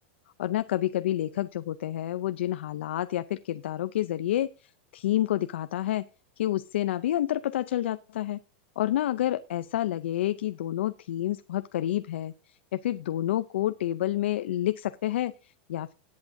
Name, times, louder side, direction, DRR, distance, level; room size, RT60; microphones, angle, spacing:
voice 1, 0.4-6.1 6.4-8.4 8.8-15.9, left 13 dB, 75° left, 12 dB, 0.5 m, -29 dB
18.5 x 8.5 x 2.6 m, 0.31 s
supercardioid pair, 180°, 6 cm